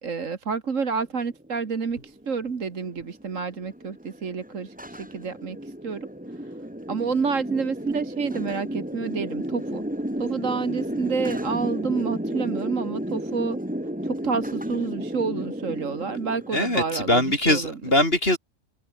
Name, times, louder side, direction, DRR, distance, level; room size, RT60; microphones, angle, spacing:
voice 1, 0.0-6.1 6.9-9.8 10.2-13.6 14.0-17.8, right 5 dB, 60° right, 2.1 m, -29 dB
sound 1, 1.2-17.5, equal, 5° right, 2.8 m, -33 dB
voice 2, 16.5-18.4, left 1 dB, 40° left, 6.2 m, -22 dB
open air
omnidirectional pair, 1.6 m